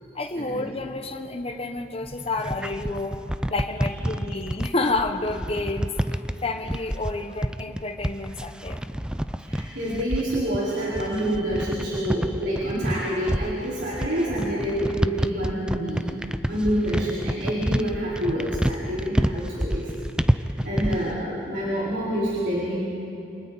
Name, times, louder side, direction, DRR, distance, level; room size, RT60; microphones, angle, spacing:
voice 1, 0.1-8.8, left 2 dB, 35° left, 6 dB, 1.2 m, -30 dB
sound 1, 2.1-21.2, equal, 5° right, 0.5 m, -28 dB
voice 2, 9.5-16.0 16.5-19.8 20.6-22.8, equal, 70° right, -9 dB, 4.7 m, -27 dB
28.5 x 27.0 x 4.2 m, 2.8 s
head